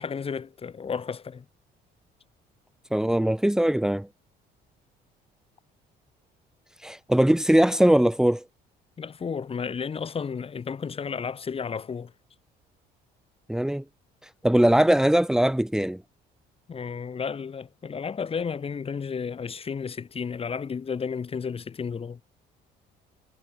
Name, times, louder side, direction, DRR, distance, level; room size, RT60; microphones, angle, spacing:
voice 1, 0.0-1.4 9.0-12.1 16.7-22.2, left 6 dB, 35° left, 6.6 m, -32 dB
voice 2, 2.9-4.1 6.8-8.4 13.5-13.8 14.4-16.0, right 1 dB, 5° right, 2.1 m, -21 dB
cardioid pair, 110°, 17 cm